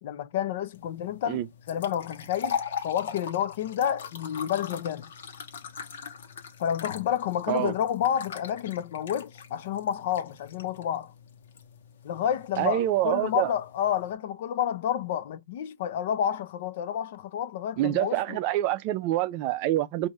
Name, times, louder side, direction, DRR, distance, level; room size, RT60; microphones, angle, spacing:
voice 1, 0.0-5.1 6.6-11.1 12.0-18.4, left 10 dB, 50° left, 0.5 m, -30 dB
sound 1, 0.7-14.1, left 7 dB, 70° left, 1.1 m, -41 dB
voice 2, 12.6-13.5 17.8-20.1, right 14 dB, 35° right, 0.5 m, -26 dB
5.2 x 2.6 x 3.2 m
hypercardioid pair, 160°, 0 cm